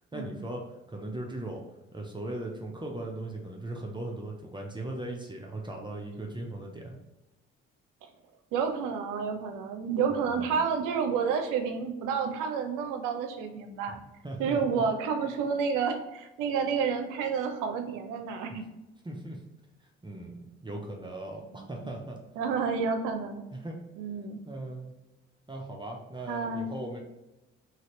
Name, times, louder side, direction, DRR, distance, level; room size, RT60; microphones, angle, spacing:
voice 1, 0.1-1.6 1.9-7.0 10.1-10.6 13.9-14.0 14.2-14.8 19.0-19.4 20.0-22.2 23.5-23.8 24.4-24.9 25.5-27.0, right 1 dB, 15° right, 0 dB, 0.6 m, -38 dB
voice 2, 8.5-14.0 14.4-18.6 21.6-21.9 22.4-23.5 24.0-24.4 26.3-26.7, right 6 dB, 75° right, 6 dB, 0.6 m, -30 dB
2.8 x 2.6 x 3.0 m, 0.99 s
hypercardioid pair, 55°, 32 cm